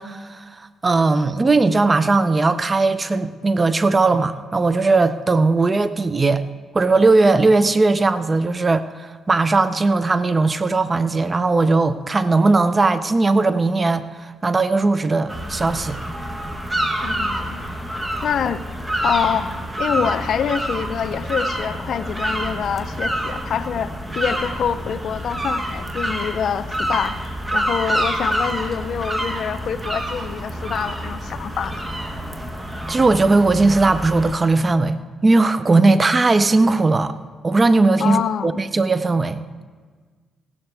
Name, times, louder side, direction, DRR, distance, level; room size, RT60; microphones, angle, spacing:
voice 1, 0.0-6.4 6.7-16.0 32.9-37.2 37.4-39.4, right 3 dB, 25° right, 13 dB, 0.5 m, -18 dB
sound 1, 15.3-34.3, right 1 dB, 10° right, 1.2 m, -27 dB
voice 2, 17.0-17.6 18.2-18.6 19.0-19.5 19.8-27.2 27.5-31.9 38.0-38.5, left 8 dB, 60° left, 13 dB, 0.5 m, -25 dB
16.0 x 11.5 x 3.4 m, 1.5 s
cardioid pair, 90°, 0 cm